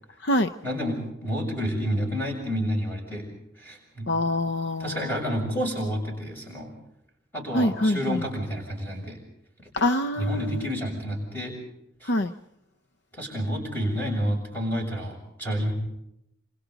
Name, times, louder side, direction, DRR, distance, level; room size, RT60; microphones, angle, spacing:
voice 1, 0.6-3.3 3.6-4.2 4.8-6.7 7.3-9.2 10.2-11.6 12.0-12.2 13.1-15.7, equal, 10° left, 0 dB, 7.1 m, -29 dB
voice 2, 4.1-5.1 7.5-8.2 9.7-10.7 12.1-12.3, left 1 dB, 65° left, 10 dB, 0.7 m, -25 dB
28.5 x 26.5 x 4.1 m, 0.78 s
head